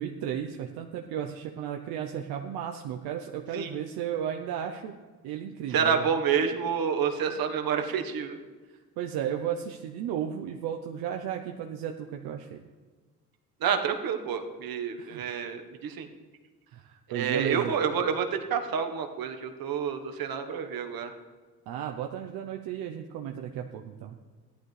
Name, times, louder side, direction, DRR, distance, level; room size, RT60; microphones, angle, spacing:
voice 1, 0.0-4.9 5.2-6.2 8.7-12.6 15.0-15.2 16.7-17.8 21.7-24.2, right 9 dB, 90° right, 3 dB, 0.8 m, -34 dB
voice 2, 5.7-8.4 13.6-16.1 17.1-21.1, right 7 dB, 70° right, 6 dB, 1.3 m, -28 dB
15.0 x 11.5 x 3.3 m, 1.4 s
cardioid pair, 75°, 36 cm